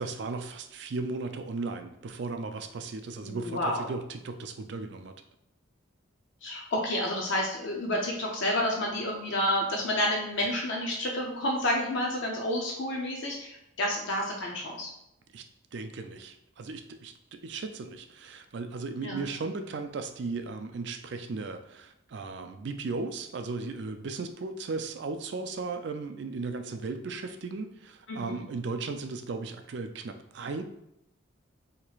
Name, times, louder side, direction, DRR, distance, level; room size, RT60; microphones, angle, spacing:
voice 1, 0.0-5.1 15.3-15.4 15.7-30.6, right 3 dB, 60° right, 7 dB, 0.4 m, -36 dB
voice 2, 3.2-3.8 6.4-14.9 19.0-19.2 28.1-28.5, left 1 dB, 65° left, -1 dB, 0.6 m, -30 dB
4.5 x 2.9 x 2.4 m, 0.82 s
head